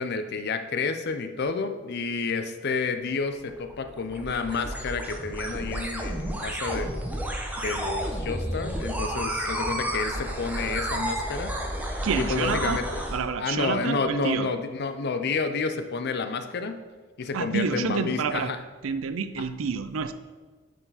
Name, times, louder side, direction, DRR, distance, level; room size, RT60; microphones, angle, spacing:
voice 1, 0.0-7.1 7.6-11.5 11.9-13.0 13.4-16.8 17.2-18.6 19.4-19.5, left 4 dB, 55° left, 9 dB, 0.5 m, -30 dB
sound 1, 3.3-13.2, equal, 10° right, 0.8 m, -31 dB
voice 2, 12.0-12.8 13.1-14.5 17.3-18.5 18.8-20.1, right 5 dB, 80° right, 11 dB, 0.5 m, -28 dB
9.0 x 4.7 x 4.0 m, 1.4 s
head